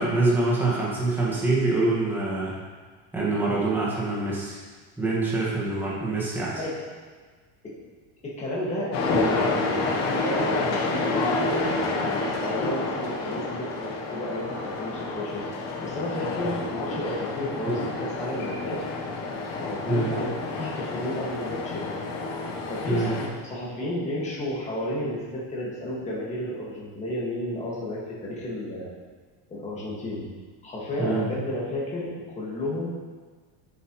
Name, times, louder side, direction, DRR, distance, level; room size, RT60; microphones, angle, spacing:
voice 1, 0.0-2.5 3.1-4.6 5.0-6.6 17.7-17.8 19.9-20.2 22.9-23.1 31.0-31.3, right 2 dB, 5° right, -7 dB, 1.8 m, -25 dB
voice 2, 8.2-11.7 12.2-15.5 15.8-18.8 19.6-22.0 22.5-28.9 29.5-30.2 30.6-32.9, left 1 dB, 15° left, -6 dB, 2.0 m, -32 dB
sound 1, 8.9-23.3, left 3 dB, 40° left, 1.3 m, -29 dB
10.5 x 7.0 x 3.2 m, 1.5 s
cardioid pair, 160°, 40 cm